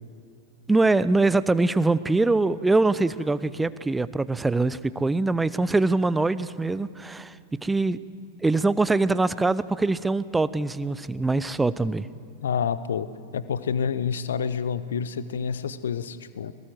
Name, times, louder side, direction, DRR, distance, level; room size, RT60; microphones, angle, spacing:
voice 1, 0.7-7.3 7.6-8.0 8.4-12.1, right 3 dB, 10° right, 17 dB, 0.6 m, -23 dB
voice 2, 12.4-13.1 13.3-16.5, left 7 dB, 65° left, 15 dB, 0.7 m, -28 dB
22.0 x 18.0 x 7.7 m, 2.4 s
figure-of-eight pair, 90°, 0 cm